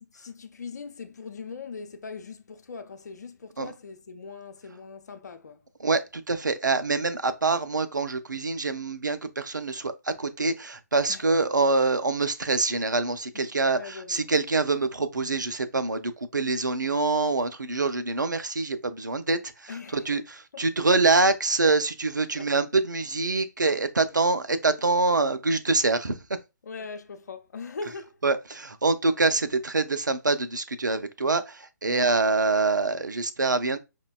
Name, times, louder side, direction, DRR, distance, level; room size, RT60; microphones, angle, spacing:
voice 1, 0.0-5.7 11.1-11.3 13.3-13.4 13.7-14.3 19.7-20.1 20.5-20.6 22.3-22.5 26.6-28.2 31.9-32.1, left 4 dB, 65° left, 0.5 m, -40 dB
voice 2, 5.8-26.2 28.2-33.8, right 3 dB, 90° right, 0.4 m, -25 dB
4.9 x 2.2 x 2.2 m
figure-of-eight pair, 135°, 10 cm